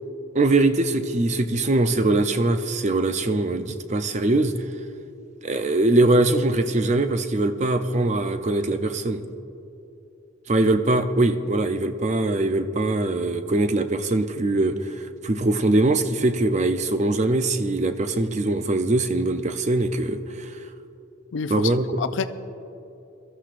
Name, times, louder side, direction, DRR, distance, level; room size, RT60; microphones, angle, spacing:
voice 1, 0.3-4.5 5.4-9.3 10.5-20.5 21.5-21.9, right 2 dB, 35° right, 0.5 m, -22 dB
voice 2, 21.3-22.2, left 6 dB, 60° left, 0.4 m, -28 dB
22.0 x 13.5 x 2.5 m
head